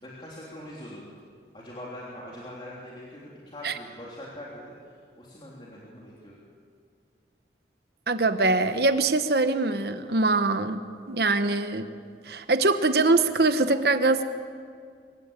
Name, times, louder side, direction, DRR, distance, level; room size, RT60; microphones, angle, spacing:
voice 1, 0.0-1.1 1.5-6.3, left 1 dB, 30° left, -5 dB, 3.4 m, -42 dB
voice 2, 8.1-10.8 11.1-11.8 12.3-14.2, right 3 dB, 60° right, 9 dB, 1.0 m, -23 dB
24.5 x 15.5 x 8.9 m, 2.2 s
head